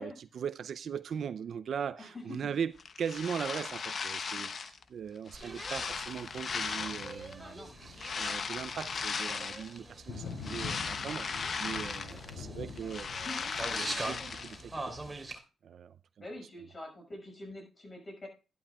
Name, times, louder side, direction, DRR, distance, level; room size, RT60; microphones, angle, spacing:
voice 1, 0.0-2.7 3.0-7.6 7.9-11.3 11.6-13.4 13.7-15.2 15.6-16.0, right 7 dB, 65° right, 0.5 m, -39 dB
voice 2, 2.0-2.4 7.4-7.7 12.0-12.2 12.8-13.4 16.2-18.3, left 1 dB, 35° left, 5.9 m, -46 dB
sound 1, 2.8-4.8 5.3-7.3 7.9-9.8 10.2-12.4 12.7-14.6, left 5 dB, 50° left, 0.8 m, -37 dB
sound 2, 5.3-15.4, right 2 dB, 20° right, 3.3 m, -44 dB
Thunder, 5.4-15.1, left 4 dB, 85° left, 3.4 m, -47 dB
12.5 x 11.5 x 2.3 m
cardioid pair, 90°, 0 cm